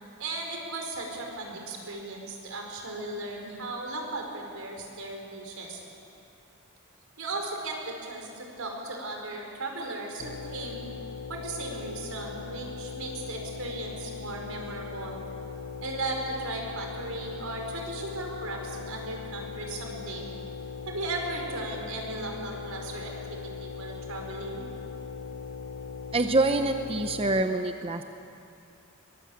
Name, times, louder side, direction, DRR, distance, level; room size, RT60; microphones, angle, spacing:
voice 1, 0.2-5.8 7.2-10.8 11.3-15.2 15.8-20.3 20.9-24.7, right 2 dB, 85° right, 1 dB, 5.0 m, -36 dB
sound 1, 10.2-27.4, left 5 dB, 75° left, 1.0 m, -39 dB
voice 2, 26.1-28.0, right 2 dB, 25° right, 7 dB, 0.8 m, -25 dB
22.5 x 21.0 x 8.6 m, 2.6 s
head